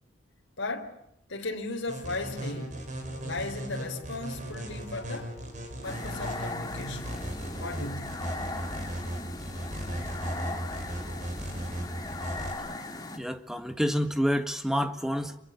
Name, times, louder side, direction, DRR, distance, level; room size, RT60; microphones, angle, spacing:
voice 1, 0.6-0.9 1.3-2.8 3.2-5.3 5.8-7.2 7.6-8.2, left 2 dB, 85° left, 3.8 m, -36 dB
sound 1, 1.9-12.5, right 1 dB, 40° right, 6.1 m, -37 dB
sound 2, 5.8-13.2, left 2 dB, 20° left, 2.9 m, -38 dB
voice 2, 13.2-15.4, equal, ahead, 1.7 m, -28 dB
26.5 x 23.0 x 8.3 m
head